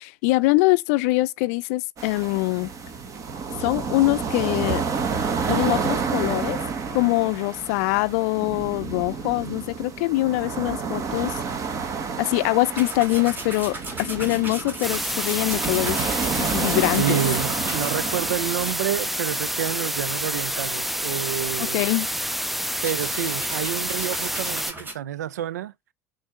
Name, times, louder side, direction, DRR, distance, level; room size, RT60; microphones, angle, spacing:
voice 1, 0.0-2.7 3.6-4.8 5.5-6.6 6.9-11.4 12.2-16.0 16.4-17.2 21.7-22.1, left 22 dB, 65° left, 0.5 m, -23 dB
sound 1, 2.0-18.7, right 5 dB, 40° right, 1.4 m, -30 dB
sound 2, 12.7-19.5 19.9-20.1 20.4-20.5 22.5-24.9, right 2 dB, 20° right, 2.9 m, -37 dB
sound 3, 14.8-24.7, equal, ahead, 0.4 m, -28 dB
voice 2, 16.7-21.9 22.8-25.7, right 11 dB, 80° right, 0.4 m, -29 dB
6.4 x 3.9 x 6.3 m
hypercardioid pair, 70°, 9 cm